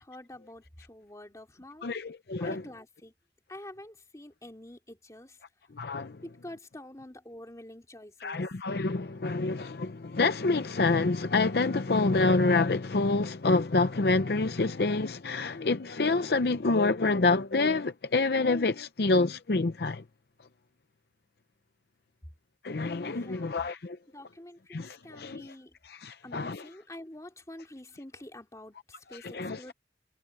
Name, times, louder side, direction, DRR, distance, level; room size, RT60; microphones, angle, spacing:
voice 1, 0.0-1.9 2.4-3.1 3.5-5.4 6.2-8.5 23.1-23.7 24.1-25.8 26.2-29.7, left 1 dB, 20° left, 2.9 m, -47 dB
voice 2, 1.8-2.6 5.7-6.2 8.2-20.0 22.6-24.0 24.7-25.4 26.0-26.6 29.3-29.7, left 3 dB, 60° left, 0.6 m, -27 dB
head